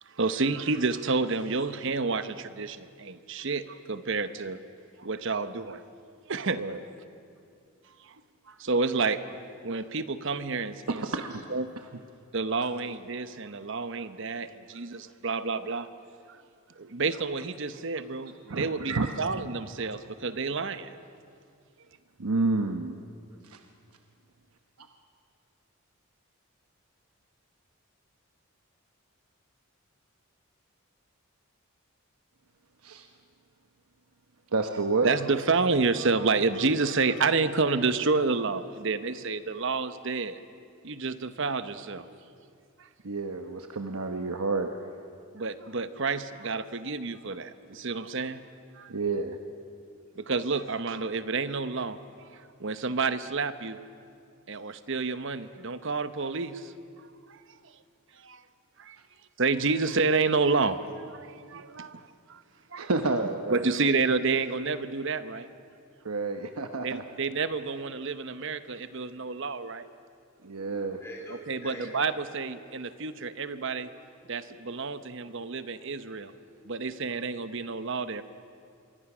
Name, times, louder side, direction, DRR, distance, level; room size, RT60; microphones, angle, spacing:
voice 1, 0.1-4.6 5.0-5.8 6.3-6.6 8.0-8.2 8.5-11.0 11.5-11.7 12.3-15.9 16.3-16.4 16.8-20.9 35.0-40.4 40.8-42.2 45.3-48.4 48.7-48.9 50.2-52.0 52.3-53.8 54.5-56.7 57.3-57.4 58.2-58.4 58.8-59.0 59.4-62.4 62.7-62.9 63.5-65.5 66.8-69.8 71.5-73.9 74.3-76.3 76.6-78.2, right 4 dB, 55° right, 11 dB, 0.9 m, -29 dB
voice 2, 10.9-11.4 18.5-19.1 22.2-23.0 23.4-23.6 32.8-33.1 34.5-35.1 43.0-44.7 48.9-49.4 62.8-63.7 66.0-67.0 70.4-71.0, right 3 dB, 85° right, 5 dB, 1.0 m, -29 dB
voice 3, 70.6-71.9 72.7-73.7 74.1-78.0, equal, 10° left, -2 dB, 4.2 m, -50 dB
26.5 x 22.5 x 6.2 m, 2.3 s
head